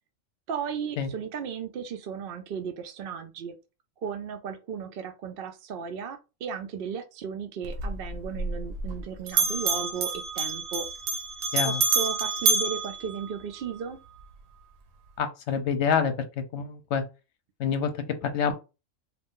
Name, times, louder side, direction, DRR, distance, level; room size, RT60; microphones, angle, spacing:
voice 1, 0.5-3.6 4.0-10.9 11.6-14.0, right 6 dB, 60° right, 0.6 m, -35 dB
Bell, 7.6-9.0 9.3-13.8, right 4 dB, 85° right, 1.0 m, -28 dB
voice 2, 15.2-16.1 16.5-17.0 17.6-18.5, left 7 dB, 65° left, 0.9 m, -27 dB
2.6 x 2.5 x 3.6 m
omnidirectional pair, 1.3 m